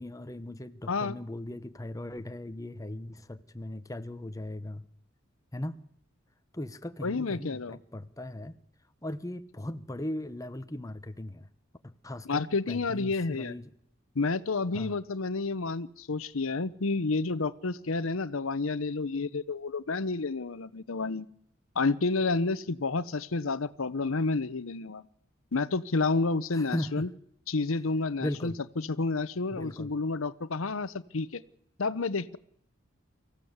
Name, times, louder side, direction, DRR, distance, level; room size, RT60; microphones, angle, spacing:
voice 1, 0.0-4.8 5.5-5.8 6.5-8.5 9.0-11.5 11.8-12.4 12.7-13.7 14.7-14.9 26.5-27.1 28.2-28.6 29.5-29.9, left 1 dB, 15° left, 10 dB, 1.0 m, -38 dB
voice 2, 7.0-7.8 12.3-13.5 14.1-21.3 21.7-25.0 25.5-27.1 27.5-31.4 31.8-32.4, left 3 dB, 85° left, 16 dB, 0.9 m, -30 dB
24.0 x 15.0 x 8.1 m, 0.69 s
head